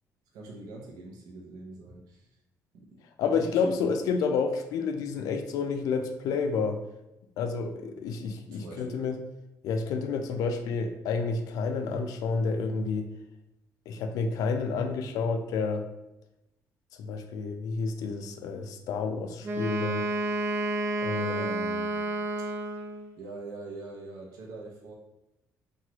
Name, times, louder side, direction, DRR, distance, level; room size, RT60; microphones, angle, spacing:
voice 1, 0.3-2.3 2.7-3.8 8.5-9.1 21.2-22.0 22.4-22.5 23.1-25.0, right 2 dB, 85° right, -1 dB, 0.6 m, -42 dB
voice 2, 3.2-6.8 7.4-9.2 9.6-13.1 13.9-15.9 17.0-20.0 21.0-21.4, left 5 dB, 80° left, 7 dB, 0.3 m, -30 dB
Wind instrument woodwind instrument, 19.4-23.1, right 2 dB, 40° right, 0.4 m, -30 dB
3.0 x 2.3 x 2.9 m, 0.91 s
cardioid pair, 145°, 6 cm